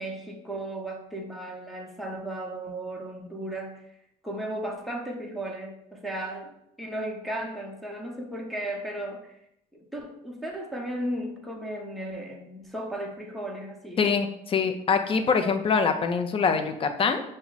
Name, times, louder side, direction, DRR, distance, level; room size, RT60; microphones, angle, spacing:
voice 1, 0.0-4.0 4.2-9.4 9.7-14.1, right 1 dB, ahead, -2 dB, 0.8 m, -35 dB
voice 2, 14.0-17.2, left 5 dB, 35° left, 8 dB, 0.5 m, -24 dB
5.8 x 2.1 x 4.0 m, 0.78 s
cardioid pair, 110°, 17 cm